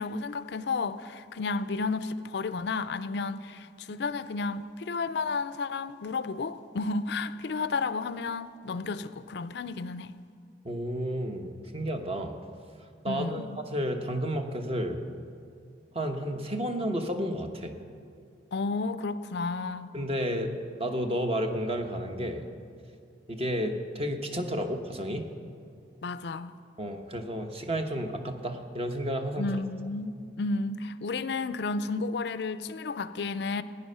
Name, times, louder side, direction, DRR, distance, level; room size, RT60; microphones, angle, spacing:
voice 1, 0.0-10.2 13.1-13.6 18.5-19.9 26.0-26.5 29.4-33.6, left 3 dB, 65° left, 0.4 m, -32 dB
voice 2, 10.6-12.4 13.0-13.4 13.7-15.0 15.9-17.7 19.9-20.5 20.8-22.5 23.3-25.2 26.8-29.5, equal, 35° right, 1.0 m, -31 dB
15.0 x 10.0 x 5.5 m
head